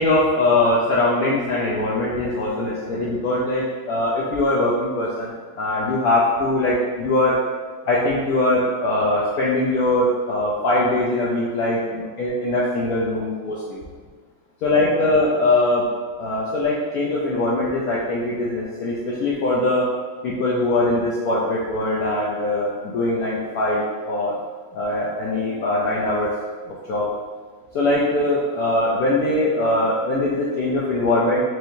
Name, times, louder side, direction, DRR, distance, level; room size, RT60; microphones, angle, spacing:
voice 1, 0.0-7.4 7.9-13.8 14.6-15.9 16.2-19.9 20.2-24.4 24.7-26.3 26.7-27.1 27.7-31.4, left 2 dB, 75° left, -6 dB, 0.9 m, -21 dB
4.6 x 3.2 x 2.6 m, 1.5 s
omnidirectional pair, 2.1 m